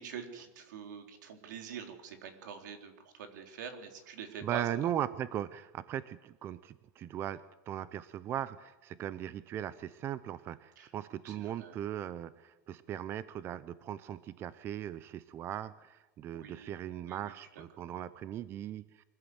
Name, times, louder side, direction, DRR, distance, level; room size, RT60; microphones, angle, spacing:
voice 1, 0.0-4.9 10.8-10.9 11.2-11.8 16.3-16.7 17.0-17.9, right 7 dB, 80° right, 5 dB, 3.9 m, -45 dB
voice 2, 4.4-19.0, right 11 dB, 25° right, 16 dB, 0.6 m, -38 dB
25.0 x 15.5 x 8.0 m, 1.1 s
supercardioid pair, 160°, 10 cm